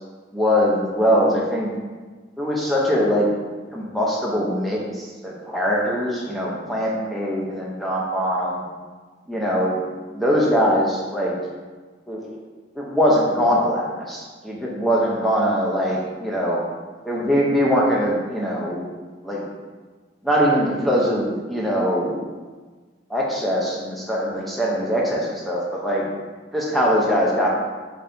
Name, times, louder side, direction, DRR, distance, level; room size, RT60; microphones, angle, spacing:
voice 1, 0.3-1.7 2.4-3.3 3.7-8.6 9.3-9.8 10.1-11.3 12.1-12.4 12.8-16.6 17.0-18.8 19.2-19.5 20.2-22.2 23.1-26.1 26.5-27.5, equal, ahead, -4 dB, 0.6 m, -22 dB
3.9 x 3.3 x 3.9 m, 1.4 s
head